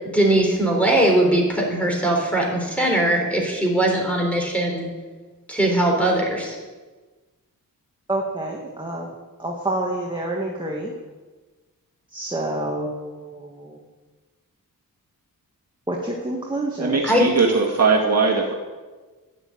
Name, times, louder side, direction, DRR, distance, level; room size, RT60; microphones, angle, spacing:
voice 1, 0.1-4.9 5.5-6.6 17.0-17.3, right 1 dB, 5° left, 0 dB, 4.0 m, -20 dB
voice 2, 8.1-9.1 9.4-10.9 12.1-13.8 15.9-17.0, right 1 dB, 15° right, -2 dB, 1.8 m, -28 dB
voice 3, 16.8-18.5, right 4 dB, 45° right, -1 dB, 2.3 m, -19 dB
12.5 x 9.8 x 8.8 m, 1.3 s
wide cardioid pair, 135°, 36 cm